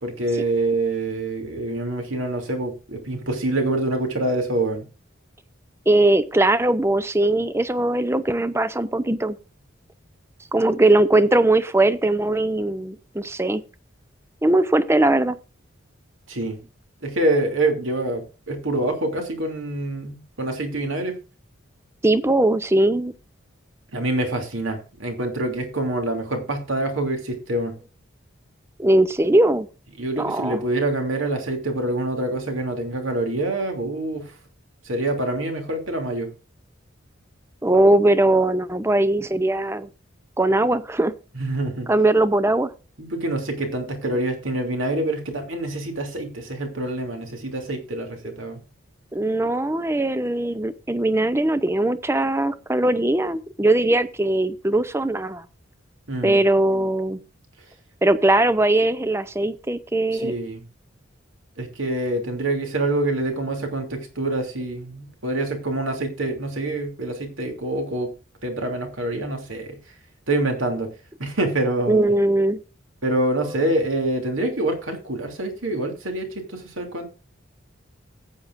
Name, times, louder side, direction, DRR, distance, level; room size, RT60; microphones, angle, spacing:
voice 1, 0.0-4.8 16.3-16.6 17.0-21.1 23.9-27.7 30.0-34.3 34.8-36.3 41.3-41.9 43.0-48.6 56.1-56.4 60.1-60.6 61.6-68.1 68.4-69.8 70.3-70.9 71.2-72.1 73.0-77.1, right 2 dB, 75° right, 2.9 m, -26 dB
voice 2, 5.9-9.4 10.5-13.6 14.4-15.4 22.0-23.1 28.8-29.7 30.2-30.6 37.6-39.9 40.4-41.1 41.9-42.7 48.2-48.3 49.1-55.4 56.2-57.2 58.0-60.3 71.9-72.6, right 1 dB, 10° right, 0.6 m, -20 dB
14.5 x 8.8 x 2.6 m
head